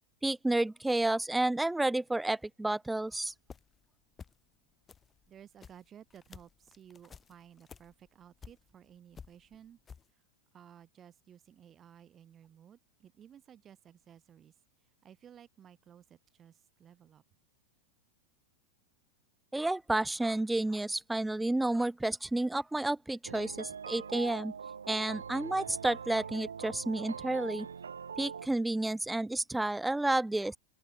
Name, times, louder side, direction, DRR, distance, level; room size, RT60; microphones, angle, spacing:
voice 1, 0.2-3.3 19.5-24.5 24.9-27.7 28.2-30.6, right 2 dB, 5° right, 0.4 m, -31 dB
sound 1, 3.2-3.9 4.1-4.6 4.8-8.9 9.1-10.1, left 6 dB, 20° left, 3.5 m, -53 dB
voice 2, 5.3-9.8 10.5-14.5 15.0-17.2, right 9 dB, 25° right, 6.5 m, -56 dB
sound 2, 23.2-28.5, right 6 dB, 70° right, 0.4 m, -42 dB
open air
figure-of-eight pair, 90°, 0 cm